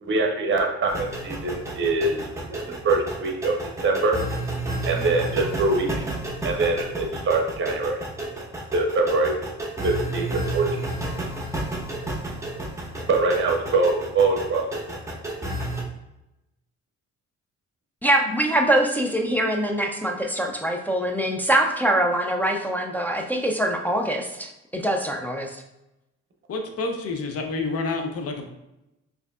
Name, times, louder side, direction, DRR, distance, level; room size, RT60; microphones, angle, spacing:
voice 1, 0.0-4.2 4.8-6.0 6.4-8.0 8.7-9.3 9.8-10.8 13.1-14.7, right 3 dB, 40° right, 2 dB, 0.8 m, -23 dB
sound 1, 0.9-15.8, right 1 dB, 10° right, 0.9 m, -31 dB
voice 2, 18.0-25.6, right 1 dB, 5° left, 2 dB, 0.3 m, -23 dB
voice 3, 26.5-28.5, left 3 dB, 50° left, 4 dB, 0.7 m, -28 dB
4.4 x 2.7 x 2.3 m, 0.93 s
cardioid pair, 90°, 30 cm